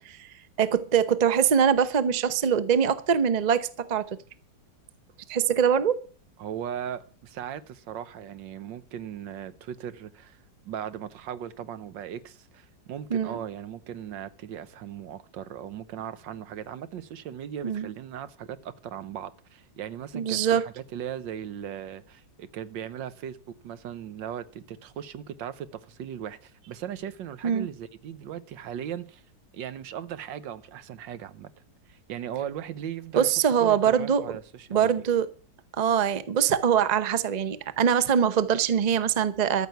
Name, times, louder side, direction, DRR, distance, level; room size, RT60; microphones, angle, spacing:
voice 1, 0.6-4.1 5.3-6.0 13.1-13.4 17.6-17.9 20.1-20.7 27.4-27.7 33.1-34.2 34.7-35.3 35.8-39.7, right 8 dB, 40° right, 0.6 m, -23 dB
voice 2, 6.4-10.4 10.6-29.2 29.5-31.5 31.9-33.3 33.6-35.0, right 9 dB, 85° right, 1.6 m, -38 dB
14.0 x 6.3 x 9.2 m
omnidirectional pair, 1.9 m